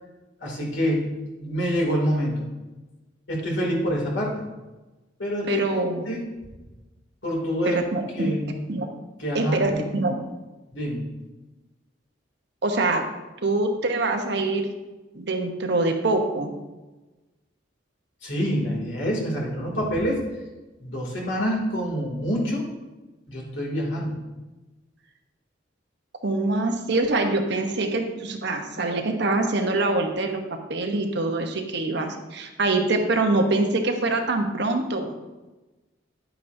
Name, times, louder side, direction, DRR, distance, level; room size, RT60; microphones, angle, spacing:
voice 1, 0.4-1.1 1.4-2.4 3.3-4.4 5.2-5.8 6.1-6.3 7.2-7.8 8.1-8.6 9.2-9.8 10.7-11.0 18.2-20.2 20.8-22.7 23.3-24.2, equal, 70° left, -2 dB, 2.7 m, -26 dB
voice 2, 5.4-6.1 7.6-8.3 8.7-8.9 9.3-10.4 12.6-13.0 13.4-14.7 15.1-16.5 26.2-30.4 30.7-35.2, right 2 dB, 60° right, 4 dB, 1.0 m, -24 dB
10.5 x 9.1 x 2.7 m, 1.1 s
head